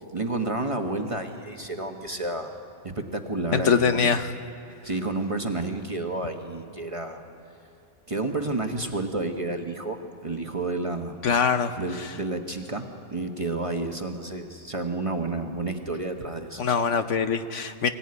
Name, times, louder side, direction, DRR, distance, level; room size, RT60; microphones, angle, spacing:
voice 1, 0.1-2.5 2.8-4.1 4.8-7.2 8.1-11.2 11.8-16.8, right 2 dB, 25° right, 4 dB, 1.1 m, -30 dB
voice 2, 3.5-4.3 11.2-11.7 12.0-12.1 16.6-17.9, left 6 dB, 60° left, 9 dB, 1.0 m, -23 dB
23.0 x 16.5 x 9.6 m, 2.5 s
omnidirectional pair, 1.5 m